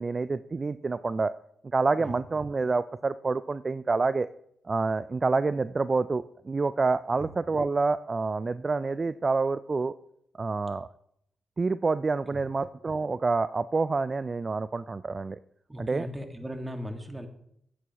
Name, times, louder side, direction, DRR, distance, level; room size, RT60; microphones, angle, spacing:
voice 1, 0.0-1.3 1.7-4.3 4.7-9.9 10.4-10.9 11.6-15.4 15.8-16.1, right 3 dB, 40° right, 14 dB, 0.3 m, -27 dB
voice 2, 15.7-17.3, equal, 20° right, 5 dB, 1.8 m, -38 dB
11.0 x 8.3 x 3.0 m, 0.72 s
supercardioid pair, 45°, 0 cm